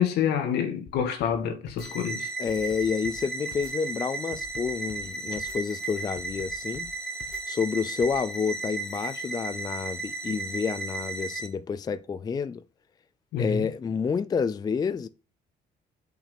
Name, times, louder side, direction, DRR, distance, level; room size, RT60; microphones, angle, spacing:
voice 1, 0.0-2.3 13.3-13.7, left 8 dB, 80° left, 1.9 m, -27 dB
sound 1, 0.9-1.4 1.7-1.9 2.5-3.2 3.5-3.7 4.3-5.1 5.4-5.6 6.2-6.9 7.2-7.4 8.0-8.2, left 6 dB, 60° left, 1.8 m, -46 dB
sound 2, 1.8-11.5, right 3 dB, 5° left, 1.7 m, -35 dB
voice 2, 2.4-6.9 7.5-12.6 13.4-15.1, left 6 dB, 25° left, 0.4 m, -29 dB
5.9 x 5.7 x 6.0 m
cardioid pair, 110°, 17 cm